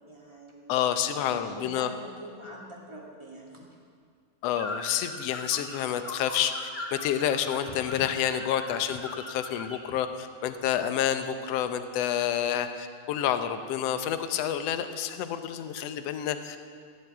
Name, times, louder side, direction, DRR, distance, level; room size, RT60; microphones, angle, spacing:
voice 1, 0.1-0.7 1.1-3.6, right 1 dB, 10° right, -3 dB, 1.8 m, -44 dB
voice 2, 0.7-1.9 4.4-16.7, left 10 dB, 70° left, 9 dB, 1.7 m, -29 dB
sound 1, 4.5-9.9, left 1 dB, 30° left, 1.4 m, -41 dB
16.5 x 7.2 x 8.9 m, 2.2 s
omnidirectional pair, 3.3 m